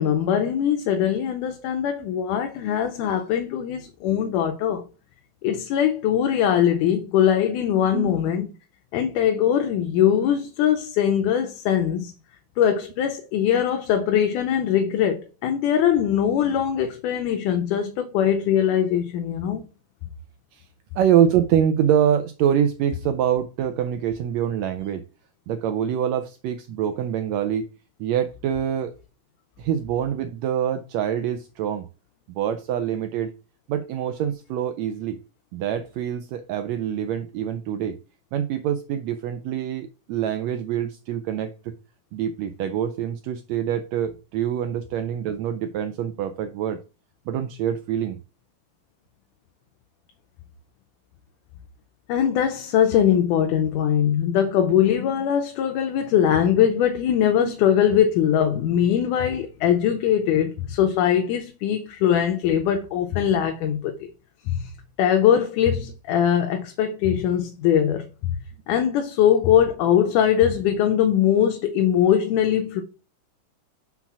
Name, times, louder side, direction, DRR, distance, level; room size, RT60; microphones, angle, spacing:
voice 1, 0.0-4.8 5.4-8.5 8.9-12.1 12.6-19.6 52.1-63.9 64.5-64.7 65.0-68.1 68.7-72.8, left 9 dB, 80° left, 2.2 m, -21 dB
voice 2, 20.9-25.1 25.5-27.7 28.0-28.9 29.6-31.9 32.3-33.3 33.7-35.2 35.5-38.0 38.3-41.8 42.1-46.8 47.3-48.2 57.4-57.5, right 9 dB, 85° right, 1.5 m, -25 dB
5.8 x 4.0 x 5.8 m
omnidirectional pair, 3.6 m